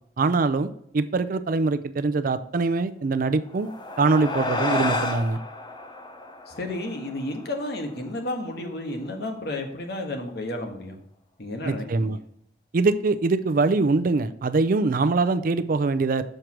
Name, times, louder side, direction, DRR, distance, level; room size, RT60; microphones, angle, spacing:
voice 1, 0.2-3.7 4.0-5.4 11.7-12.2 12.7-16.2, right 3 dB, 50° right, 12 dB, 0.5 m, -23 dB
sound 1, 3.4-8.2, left 2 dB, 25° left, 0.7 m, -31 dB
voice 2, 6.5-11.0 11.4-12.2, left 1 dB, 65° left, 3 dB, 1.3 m, -32 dB
6.5 x 4.6 x 5.9 m, 0.72 s
head